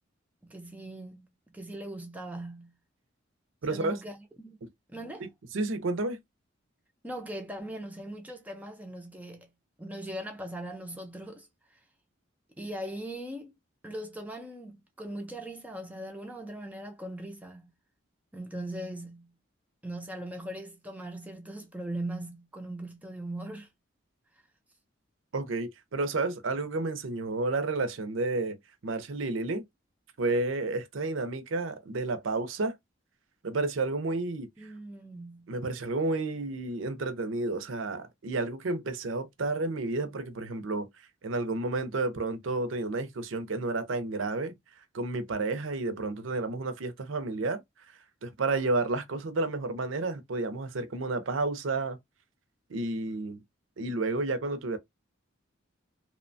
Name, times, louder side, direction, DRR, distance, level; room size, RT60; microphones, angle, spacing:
voice 1, 0.4-2.7 3.7-4.6 4.9-5.3 7.0-9.5 9.8-11.8 12.6-13.5 13.8-17.7 18.3-19.3 19.8-23.7 34.6-35.5, right 1 dB, 5° right, 0.4 m, -40 dB
voice 2, 3.6-4.0 4.6-4.7 5.2-5.3 5.5-6.2 25.3-28.6 28.8-29.6 30.2-32.8 33.4-34.7 35.5-40.9 41.2-44.5 44.9-47.6 48.2-52.0 52.7-53.4 53.8-54.8, right 3 dB, 70° right, 0.6 m, -31 dB
2.8 x 2.1 x 2.5 m
head